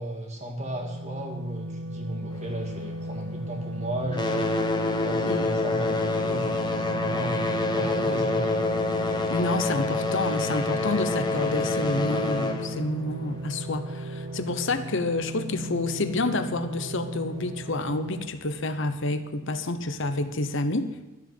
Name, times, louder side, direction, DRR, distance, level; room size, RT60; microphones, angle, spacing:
voice 1, 0.0-4.7 5.0-7.4 7.7-8.5, right 1 dB, 30° right, 0 dB, 2.0 m, -34 dB
sound 1, 0.6-18.3, right 1 dB, 50° right, 0.7 m, -36 dB
sound 2, 2.3-3.7 4.0-14.3 15.1-15.2 15.9-16.0 16.6-16.7, left 2 dB, 20° left, 0.9 m, -28 dB
voice 2, 9.3-21.0, left 2 dB, 55° left, 10 dB, 0.9 m, -29 dB
12.5 x 7.2 x 7.8 m, 1.1 s
head